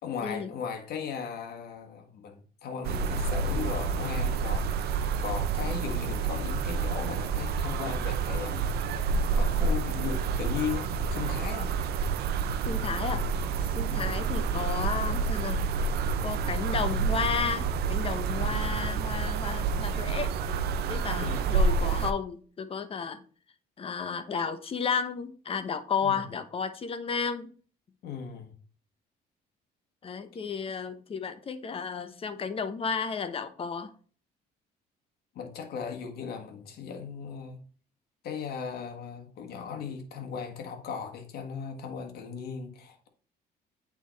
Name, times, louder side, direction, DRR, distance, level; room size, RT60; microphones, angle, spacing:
voice 1, 0.0-8.7 9.3-11.7 13.8-14.1 18.4-18.6 21.1-21.5 26.0-26.2 28.0-28.5 35.3-37.6 38.2-43.1, left 6 dB, 65° left, 1.5 m, -37 dB
sound 1, 2.8-22.1, right 5 dB, 70° right, 0.7 m, -29 dB
voice 2, 12.6-13.2 13.7-15.7 16.2-20.3 20.9-23.2 23.8-27.5 30.0-33.9, left 6 dB, 35° left, 0.8 m, -33 dB
8.4 x 3.7 x 4.0 m
cardioid pair, 110°, 17 cm